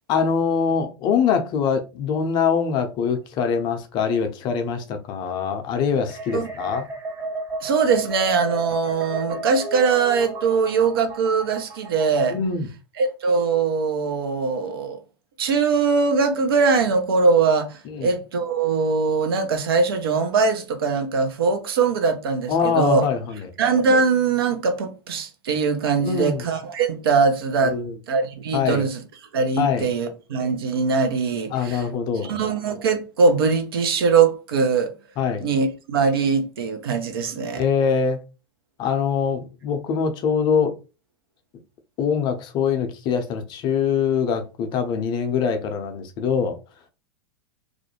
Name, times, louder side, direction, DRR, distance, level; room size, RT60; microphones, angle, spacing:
voice 1, 0.1-6.9 12.3-12.7 17.9-18.1 22.5-23.5 26.0-26.4 27.6-27.9 28.5-28.8 29.6-29.9 31.5-32.4 35.2-35.4 37.6-38.2 38.8-40.7 42.0-46.6, left 6 dB, 35° left, 0.5 m, -23 dB
sound 1, 6.1-12.5, right 1 dB, 20° right, 0.5 m, -33 dB
voice 2, 7.6-12.4 13.0-15.0 15.4-23.1 23.6-27.8 28.1-29.0 29.3-31.8 32.2-34.9 35.4-37.6, right 5 dB, 70° right, 0.6 m, -21 dB
2.4 x 2.1 x 2.8 m
hypercardioid pair, 95°, 13 cm